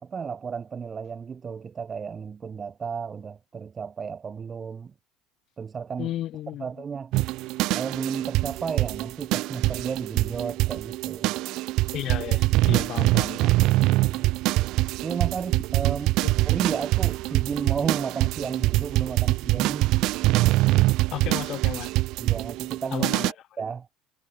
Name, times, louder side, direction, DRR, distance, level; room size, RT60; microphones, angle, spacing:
voice 1, 0.0-4.9 5.6-6.1 6.6-7.1 7.7-11.3 13.9-14.3 15.0-19.9 22.2-23.1 23.6-23.9, right 6 dB, 25° right, 1.7 m, -33 dB
voice 2, 6.0-6.6 11.9-13.5 16.2-16.3 21.1-21.9 22.9-23.3, left 13 dB, 50° left, 3.2 m, -33 dB
sound 1, 7.1-23.3, right 19 dB, 60° right, 0.4 m, -24 dB
supercardioid pair, 115°, 0 cm